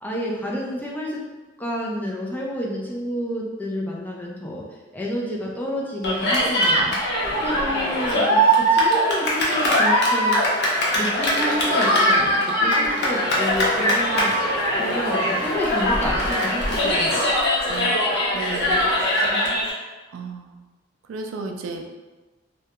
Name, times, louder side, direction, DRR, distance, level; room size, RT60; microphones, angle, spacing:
voice 1, 0.0-1.2 1.6-7.0 7.4-10.4 11.0-14.4 14.8-17.3 19.2-19.6, equal, 10° left, -3 dB, 0.3 m, -30 dB
Cheering, 6.0-19.7, equal, 55° left, 0.5 m, -21 dB
voice 2, 17.4-18.0 18.3-18.9 20.1-20.7 21.1-21.8, right 4 dB, 75° right, 4 dB, 0.3 m, -34 dB
2.2 x 2.1 x 2.8 m, 1.2 s
head